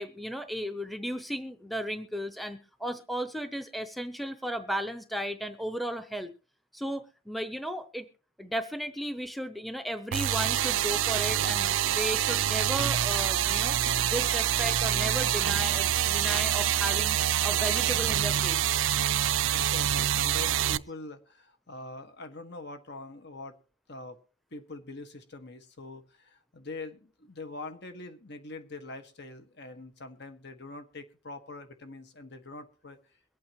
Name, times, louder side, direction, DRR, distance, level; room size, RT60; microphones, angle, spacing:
voice 1, 0.0-6.3 6.7-8.1 8.4-13.8 14.0-18.6, equal, ahead, 9 dB, 0.8 m, -35 dB
sound 1, 10.1-20.8, right 11 dB, 80° right, 0.5 m, -26 dB
voice 2, 19.5-23.5 23.9-24.2 24.5-33.0, left 2 dB, 60° left, 8 dB, 1.7 m, -43 dB
23.0 x 8.5 x 3.1 m, 0.38 s
head